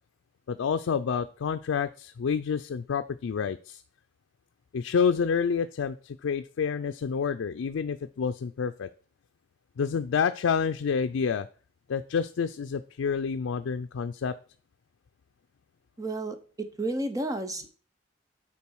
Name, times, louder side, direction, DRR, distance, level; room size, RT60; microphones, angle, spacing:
voice 1, 0.5-3.8 4.7-8.9 9.8-11.5 11.9-14.3, left 6 dB, 85° left, 9 dB, 0.4 m, -28 dB
voice 2, 16.0-16.4 16.8-17.7, right 1 dB, 20° right, 8 dB, 0.8 m, -31 dB
8.6 x 4.4 x 4.6 m, 0.39 s
head